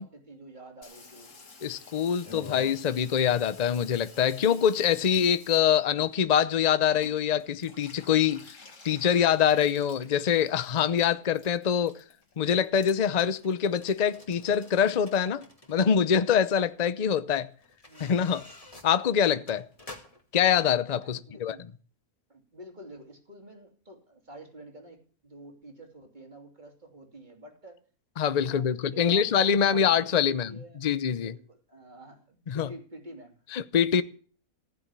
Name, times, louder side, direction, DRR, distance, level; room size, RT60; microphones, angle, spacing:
voice 1, 0.0-1.3 17.9-18.3 21.0-21.6 22.3-27.8 28.4-30.8 31.2-33.4, equal, 30° right, 3.2 m, -48 dB
Water tap faucet / Bathtub (filling or washing), 0.8-15.4 15.6-16.4 16.7-16.8 17.0-17.1 17.3-17.7 18.0-18.1 18.3-18.4 18.7-18.8 19.0-19.1 19.3-19.4 19.7-19.8 20.1-20.2 20.5-20.6, left 3 dB, 60° left, 2.4 m, -51 dB
voice 2, 1.6-8.6 8.8-12.0 12.4-17.5 18.0-18.5 18.8-19.7 20.3-21.6 28.2-31.3 32.5-32.7 33.5-34.0, left 8 dB, 40° left, 0.6 m, -24 dB
sound 1, 12.2-15.7 16.7-16.8 17.6-20.3 20.8-20.9, left 2 dB, 25° left, 2.4 m, -50 dB
15.5 x 7.0 x 9.8 m
omnidirectional pair, 1.5 m